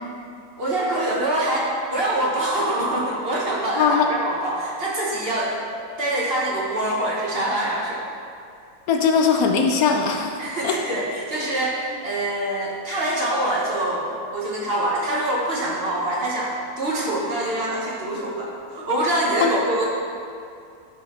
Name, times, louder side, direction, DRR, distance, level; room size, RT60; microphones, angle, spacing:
voice 1, 0.6-5.6 6.0-8.0 10.4-19.9, right 1 dB, 45° right, -4 dB, 1.0 m, -25 dB
voice 2, 3.8-4.1 8.9-10.3 10.6-10.8 19.4-19.5, left 6 dB, 70° left, 3 dB, 1.0 m, -19 dB
10.0 x 3.9 x 4.2 m, 2.4 s
omnidirectional pair, 1.7 m